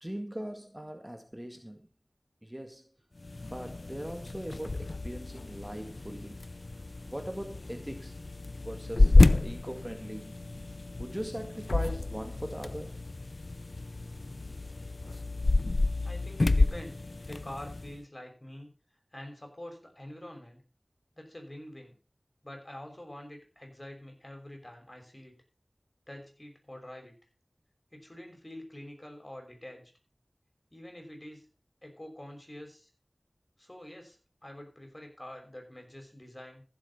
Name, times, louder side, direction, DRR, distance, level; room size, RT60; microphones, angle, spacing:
voice 1, 0.0-1.9 2.4-2.9 3.3-6.4 7.0-8.2 8.6-10.4 11.0-13.0, equal, 15° right, 1.9 m, -40 dB
sound 1, 3.2-18.0, left 2 dB, 70° left, 0.6 m, -29 dB
voice 2, 16.0-18.7 19.1-20.6 21.1-22.0 22.4-25.4 26.1-27.1 27.9-29.8 30.7-31.5 31.8-32.9 33.6-36.6, left 1 dB, 30° left, 5.8 m, -46 dB
15.0 x 7.6 x 5.7 m
wide cardioid pair, 40°, 0 cm